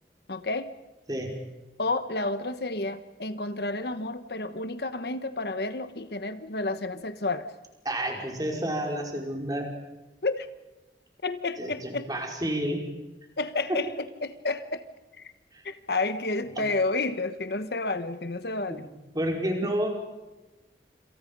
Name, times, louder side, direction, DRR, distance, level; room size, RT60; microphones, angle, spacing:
voice 1, 0.3-0.7 1.8-7.5 10.2-10.5 11.2-12.1 13.4-14.8 15.2-15.3 15.6-18.9 19.6-19.8, left 2 dB, 65° left, 11 dB, 1.2 m, -30 dB
voice 2, 7.8-9.7 11.6-12.8 13.7-13.8 15.5-15.6 16.5-16.7 18.7-18.9 19.1-19.9, right 1 dB, 20° right, 1 dB, 5.0 m, -30 dB
27.5 x 27.0 x 5.4 m, 1.1 s
head